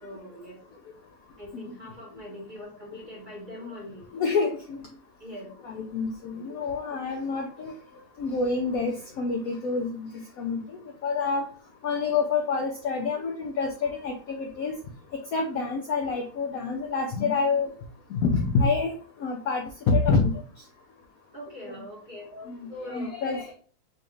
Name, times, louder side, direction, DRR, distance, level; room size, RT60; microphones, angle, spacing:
voice 1, 0.0-0.6 1.4-4.1 5.2-5.5 21.3-23.1, left 1 dB, 35° right, -4 dB, 0.8 m, -42 dB
voice 2, 4.1-4.8 5.6-7.7 8.2-10.1 10.4-11.5 11.8-14.8 15.3-17.7 18.1-18.9 19.2-20.4 21.6-21.7 22.5-23.5, left 4 dB, 80° left, 3 dB, 0.8 m, -27 dB
5.2 x 2.4 x 2.9 m, 0.41 s
omnidirectional pair, 2.1 m